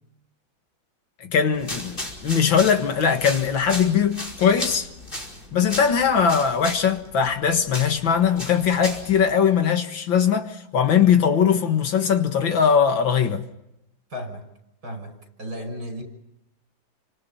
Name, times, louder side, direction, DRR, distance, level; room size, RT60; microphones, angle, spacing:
voice 1, 1.2-4.9 5.5-13.4, left 7 dB, 70° left, 2.4 m, -20 dB
sound 1, 1.5-9.2, left 1 dB, 25° left, 5.4 m, -36 dB
voice 2, 14.1-14.5 14.8-16.0, equal, 50° right, 6.6 m, -34 dB
29.5 x 26.0 x 5.6 m
omnidirectional pair, 2.2 m